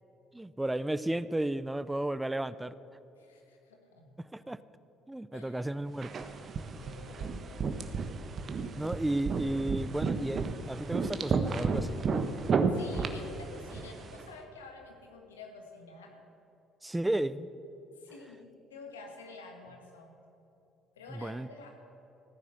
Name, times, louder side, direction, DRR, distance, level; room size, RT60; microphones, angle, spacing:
voice 1, 0.3-2.8 4.2-4.6 5.1-6.2 8.7-12.0 16.8-17.5 21.1-21.5, right 1 dB, 10° right, 16 dB, 0.5 m, -33 dB
voice 2, 3.2-4.2 5.3-5.6 6.8-7.8 8.4-8.6 12.7-16.2 17.9-20.1 21.0-21.7, left 3 dB, 90° left, 2 dB, 1.8 m, -50 dB
sound 1, 6.0-14.2, right 4 dB, 45° right, 1.3 m, -33 dB
15.5 x 10.0 x 7.6 m, 3.0 s
hypercardioid pair, 55°, 0 cm